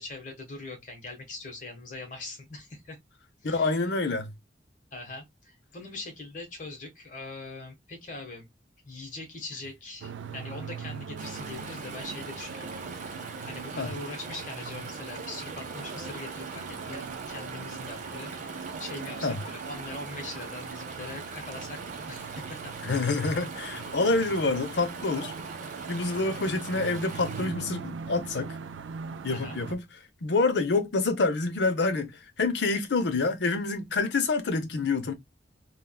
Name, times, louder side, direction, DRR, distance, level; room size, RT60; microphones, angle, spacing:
voice 1, 0.0-3.0 3.4-3.8 4.9-8.5 8.8-12.7 13.4-18.3 18.8-22.7 23.3-23.4 29.3-29.6, left 3 dB, 45° left, 1.2 m, -42 dB
voice 2, 3.4-4.3 13.8-13.9 19.2-19.4 22.8-25.3 25.9-28.6 29.2-29.8 30.2-32.1 32.4-35.1, left 3 dB, 70° left, 0.6 m, -27 dB
sound 1, 10.0-29.8, right 6 dB, 90° right, 0.4 m, -41 dB
Chatter / Stream, 11.2-27.5, right 4 dB, 45° right, 0.6 m, -41 dB
3.4 x 2.2 x 2.2 m
head